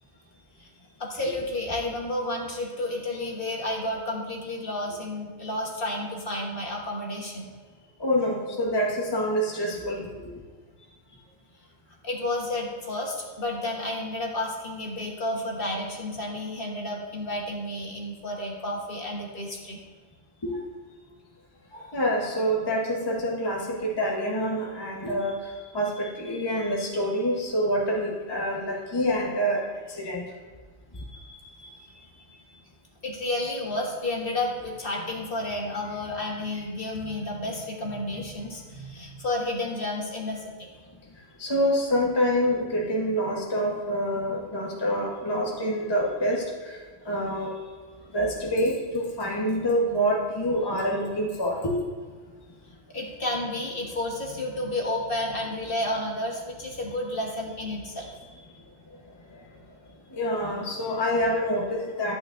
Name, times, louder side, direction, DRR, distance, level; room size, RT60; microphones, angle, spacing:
voice 1, 1.0-7.5 9.2-9.3 12.0-19.8 21.7-21.9 33.0-40.7 52.9-58.1, left 1 dB, 50° left, -1 dB, 1.5 m, -31 dB
voice 2, 8.0-10.1 20.4-20.6 21.9-25.4 25.7-29.6 29.9-30.3 31.3-31.7 41.4-46.7 47.0-47.5 48.1-51.8 60.2-62.1, equal, 20° left, -2 dB, 1.1 m, -26 dB
11.5 x 8.8 x 2.6 m, 1.5 s
omnidirectional pair, 1.2 m